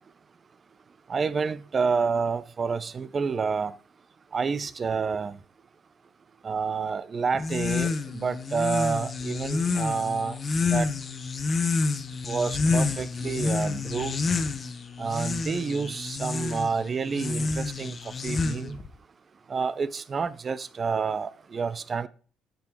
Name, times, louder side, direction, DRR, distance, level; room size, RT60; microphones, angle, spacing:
voice 1, 1.1-3.7 4.3-5.4 6.4-10.4 10.7-10.9 12.3-14.1 15.0-18.0 18.2-18.8 19.5-22.1, right 5 dB, 30° right, 0.4 m, -29 dB
sound 1, 7.3-18.9, left 4 dB, 30° left, 0.6 m, -29 dB
7.6 x 5.2 x 3.5 m
cardioid pair, 115°, 0 cm